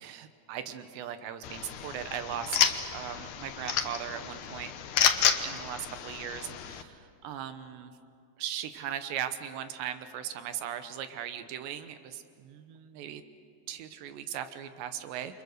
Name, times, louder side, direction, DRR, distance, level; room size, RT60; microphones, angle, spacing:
voice 1, 0.0-4.7 5.4-7.9 8.4-13.2 13.7-15.4, right 10 dB, 80° right, 9 dB, 3.2 m, -38 dB
sound 1, 1.4-6.8, left 9 dB, 80° left, 1.7 m, -30 dB
28.5 x 26.0 x 6.6 m, 2.5 s
omnidirectional pair, 5.0 m